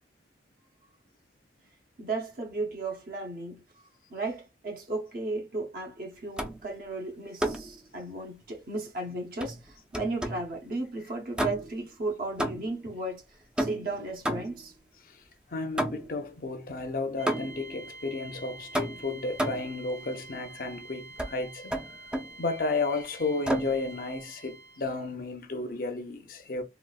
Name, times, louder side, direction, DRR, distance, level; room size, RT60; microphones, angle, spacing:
voice 1, 2.0-3.6 4.1-13.2 13.6-14.7, right 2 dB, 55° right, 0.7 m, -35 dB
sound 1, 6.4-6.7 7.4-7.8 9.4-10.5 11.4-11.9 12.4-12.9 13.6-14.7 15.8-16.2 17.3-17.7 18.7-19.8 21.2-21.4 21.7-22.4 23.5-23.8, right 1 dB, 5° right, 0.3 m, -32 dB
voice 2, 15.5-21.7 22.4-26.6, left 3 dB, 55° left, 0.6 m, -33 dB
sound 2, 17.2-24.9, right 3 dB, 90° right, 2.0 m, -47 dB
3.9 x 2.3 x 2.3 m
head